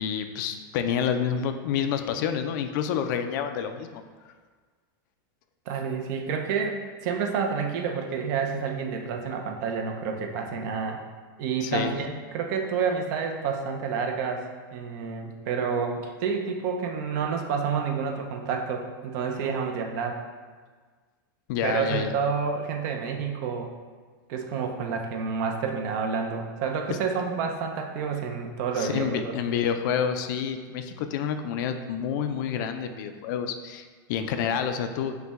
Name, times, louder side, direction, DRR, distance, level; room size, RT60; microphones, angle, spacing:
voice 1, 0.0-4.0 11.6-11.9 21.5-22.1 26.9-27.0 28.8-35.2, left 8 dB, 60° left, 7 dB, 0.4 m, -28 dB
voice 2, 5.7-11.0 11.4-14.4 14.7-20.2 21.6-23.7 24.3-29.3, right 5 dB, 55° right, 3 dB, 0.6 m, -29 dB
5.5 x 2.2 x 3.5 m, 1.5 s
supercardioid pair, 140°, 12 cm